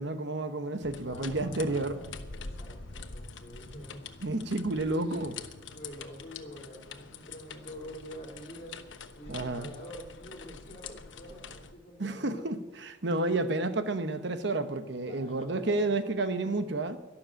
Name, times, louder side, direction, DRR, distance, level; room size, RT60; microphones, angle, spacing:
voice 1, 0.0-2.0 4.2-5.3 9.3-9.7 12.0-17.0, right 2 dB, 65° right, 1.0 m, -30 dB
sound 1, 0.8-11.7, left 4 dB, 80° left, 1.2 m, -45 dB
voice 2, 1.0-4.1 4.7-5.3 5.7-8.8 9.1-12.5 15.1-16.0, equal, 35° left, 4.0 m, -46 dB
12.5 x 12.0 x 7.6 m
head